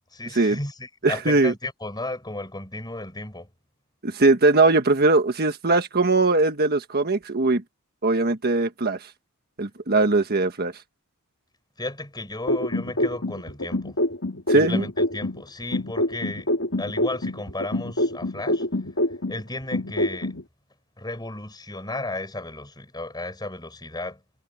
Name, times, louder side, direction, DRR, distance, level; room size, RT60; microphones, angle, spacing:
voice 1, 0.1-3.5 11.8-14.0 14.5-16.5 16.8-18.7 19.3-20.4 21.0-24.2, left 2 dB, 20° left, 6.0 m, -34 dB
voice 2, 1.0-1.5 4.0-7.6 8.0-9.1 9.6-10.7 14.5-14.9, right 3 dB, 45° right, 1.5 m, -20 dB
sound 1, 12.5-15.4 15.7-19.4 19.7-20.4, left 1 dB, 60° left, 3.8 m, -25 dB
head